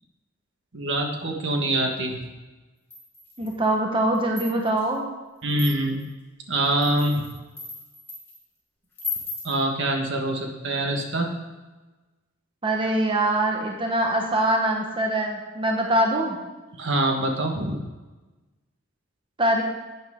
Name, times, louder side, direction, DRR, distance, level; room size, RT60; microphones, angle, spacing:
voice 1, 0.7-2.3 5.4-6.0 6.5-7.3 9.4-11.4 16.8-17.8, right 1 dB, 65° right, 3 dB, 1.5 m, -25 dB
sound 1, 2.9-3.6 4.1-4.8 5.5-6.0 6.6-8.4 9.0-9.6, left 4 dB, 10° left, 3.4 m, -36 dB
voice 2, 3.4-5.1 12.6-16.4 19.4-19.6, right 1 dB, 25° right, 1 dB, 1.1 m, -23 dB
11.0 x 8.9 x 3.7 m, 1.2 s
head